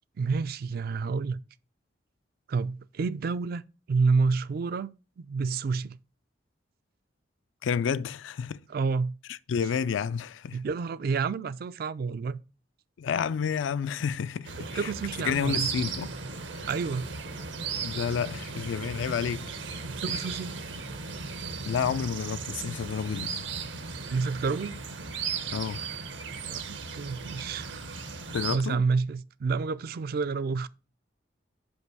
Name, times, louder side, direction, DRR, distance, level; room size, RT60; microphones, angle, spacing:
voice 1, 0.2-1.4 2.5-3.6 3.9-6.0 8.7-9.1 10.5-12.4 14.6-15.7 16.7-17.1 19.8-20.5 24.1-24.8 26.5-27.8 28.3-30.7, right 4 dB, 55° right, 0.3 m, -29 dB
voice 2, 7.6-8.6 9.3-10.6 13.0-14.9 15.2-16.1 17.8-19.4 20.1-20.2 21.7-23.3 25.5-25.8 28.3-28.8, left 7 dB, 80° left, 0.4 m, -30 dB
sound 1, 14.4-28.6, right 5 dB, 75° right, 0.8 m, -36 dB
5.2 x 5.2 x 4.7 m
head